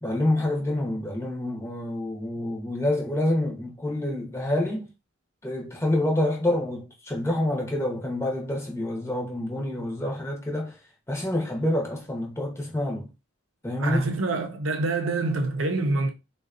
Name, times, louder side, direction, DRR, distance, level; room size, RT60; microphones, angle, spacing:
voice 1, 0.0-4.8 5.4-10.8 11.1-13.1 13.6-14.0, left 1 dB, 15° left, 0.8 m, -27 dB
voice 2, 13.8-16.1, right 2 dB, 75° right, 0.6 m, -26 dB
3.6 x 2.3 x 2.4 m
head